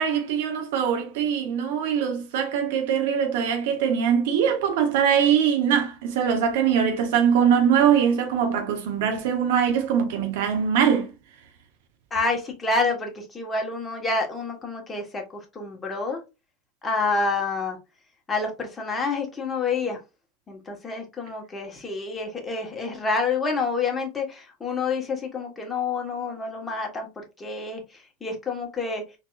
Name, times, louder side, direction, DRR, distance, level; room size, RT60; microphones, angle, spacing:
voice 1, 0.0-11.1, right 8 dB, 65° right, 0.9 m, -22 dB
voice 2, 12.1-16.2 16.8-17.8 18.3-20.0 20.5-27.8 28.2-29.0, left 4 dB, 20° left, 1.3 m, -28 dB
4.0 x 2.8 x 2.4 m
hypercardioid pair, 95°, 0 cm